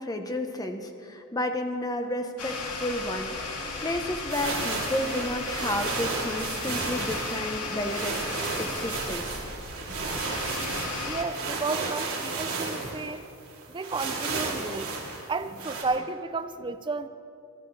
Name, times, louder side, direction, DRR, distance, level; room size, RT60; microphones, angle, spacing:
voice 1, 0.0-3.3 3.8-8.3 8.6-9.4, left 1 dB, 15° left, 5 dB, 0.9 m, -31 dB
sound 1, 2.4-11.2, left 3 dB, 85° left, 1.9 m, -35 dB
sound 2, 4.3-15.8, right 4 dB, 70° right, 2.8 m, -33 dB
voice 2, 11.1-13.2 13.7-14.9 15.3-17.1, right 3 dB, 20° right, 10 dB, 0.4 m, -32 dB
24.0 x 13.0 x 3.3 m, 2.5 s
head